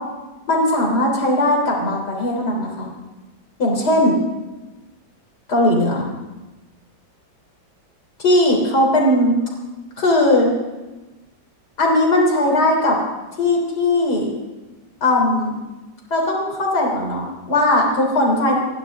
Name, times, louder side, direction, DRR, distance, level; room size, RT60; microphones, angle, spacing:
voice 1, 0.5-2.9 3.6-4.2 5.5-6.1 8.2-9.4 10.0-10.5 11.8-13.0 13.4-14.3 15.0-15.5 16.1-18.6, left 1 dB, 55° left, -1 dB, 3.9 m, -18 dB
28.0 x 11.5 x 3.6 m, 1.1 s
omnidirectional pair, 2.1 m